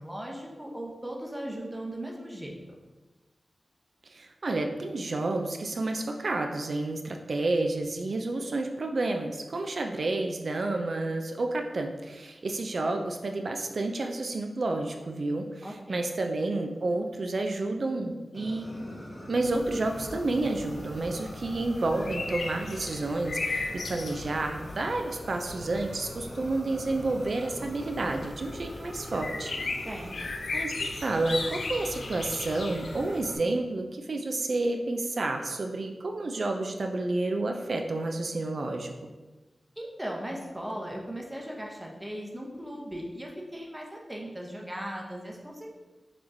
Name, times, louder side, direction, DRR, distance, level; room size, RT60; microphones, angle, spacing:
voice 1, 0.0-2.6 15.6-16.0 29.8-30.3 39.8-45.7, right 1 dB, 15° right, -1 dB, 0.8 m, -38 dB
voice 2, 4.1-18.7 19.3-30.0 30.5-39.1, right 2 dB, 65° right, 4 dB, 0.3 m, -30 dB
Fire, 18.3-33.4, equal, 30° left, 1.1 m, -43 dB
sound 1, 19.4-33.2, left 3 dB, 80° left, 0.4 m, -38 dB
5.8 x 3.0 x 2.6 m, 1.2 s
cardioid pair, 60°, 0 cm